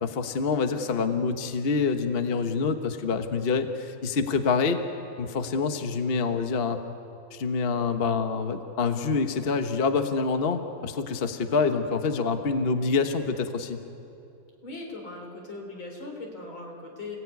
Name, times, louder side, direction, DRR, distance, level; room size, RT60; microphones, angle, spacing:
voice 1, 0.0-4.8 5.2-6.8 7.3-13.8, left 4 dB, 35° left, 7 dB, 1.2 m, -26 dB
voice 2, 14.6-17.2, left 2 dB, 85° left, 1 dB, 4.7 m, -39 dB
28.5 x 17.5 x 9.5 m, 2.7 s
omnidirectional pair, 2.1 m